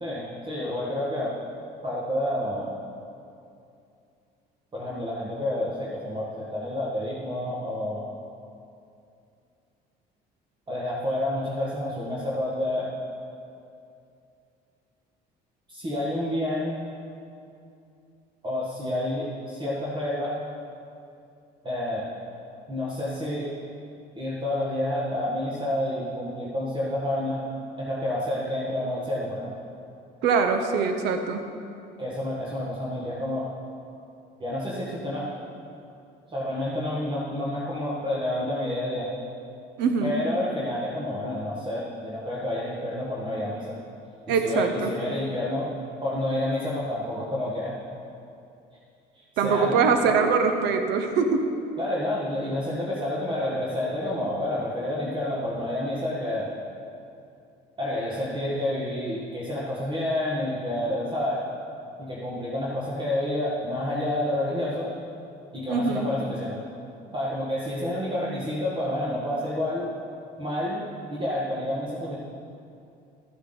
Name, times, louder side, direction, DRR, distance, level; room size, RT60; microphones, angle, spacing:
voice 1, 0.0-1.4 1.8-2.7 4.7-8.0 10.7-12.9 15.7-16.8 18.4-20.4 21.6-22.1 22.7-23.5 24.2-27.5 27.8-29.5 32.0-33.5 34.4-35.3 36.3-39.1 40.0-43.8 44.3-45.7 46.0-47.8 49.1-49.8 51.8-56.5 57.8-61.5 62.0-64.9 65.5-66.6 67.1-69.9 70.4-72.2, left 1 dB, 25° right, -6 dB, 1.7 m, -29 dB
voice 2, 30.2-31.5 39.8-40.2 44.3-44.9 49.4-51.5 65.7-66.1, right 5 dB, 75° right, 6 dB, 0.9 m, -23 dB
13.5 x 8.0 x 3.9 m, 2.5 s
cardioid pair, 115°, 17 cm